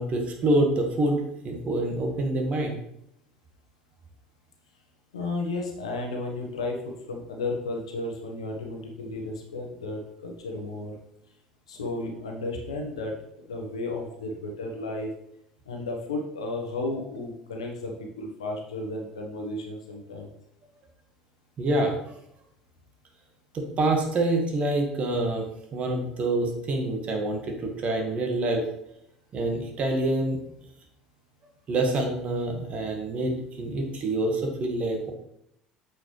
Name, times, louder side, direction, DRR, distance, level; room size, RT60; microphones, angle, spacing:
voice 1, 0.0-2.8 21.6-21.9 23.5-25.5 25.7-28.6 29.3-30.4 31.7-35.1, right 2 dB, 45° right, 3 dB, 1.7 m, -26 dB
voice 2, 5.1-6.8 7.1-11.0 11.7-13.1 13.5-15.1 15.7-20.3, left 2 dB, 85° left, 1 dB, 1.2 m, -33 dB
8.1 x 4.9 x 3.3 m, 0.78 s
hypercardioid pair, 65°, 3 cm